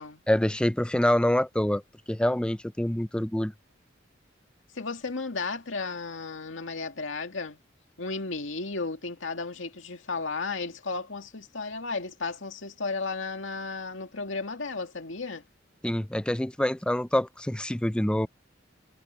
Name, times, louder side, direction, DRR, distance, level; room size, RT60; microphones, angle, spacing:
voice 1, 0.3-1.8 2.1-3.5 15.8-18.3, left 1 dB, 5° left, 0.5 m, -26 dB
voice 2, 4.7-7.6 8.0-15.4, left 3 dB, 85° left, 2.2 m, -34 dB
head